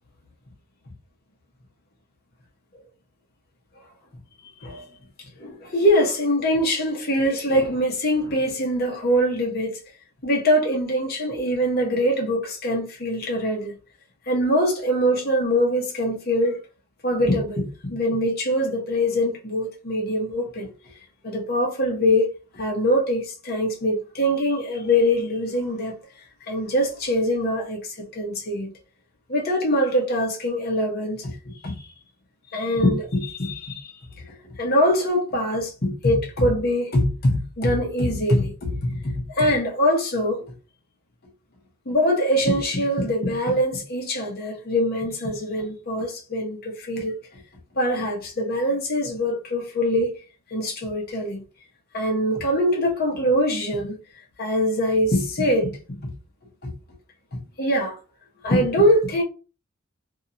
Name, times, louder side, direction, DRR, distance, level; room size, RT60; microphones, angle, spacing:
voice 1, 5.4-9.8 10.2-13.7 14.3-16.6 17.0-20.7 21.2-25.9 26.5-28.7 29.3-31.7 32.5-34.2 34.6-40.5 41.9-47.2 47.8-50.1 50.5-51.4 51.9-54.0 54.4-56.0 56.6-56.7 57.6-58.0 58.4-59.2, equal, 45° left, 0.9 m, -23 dB
2.8 x 2.7 x 2.5 m
head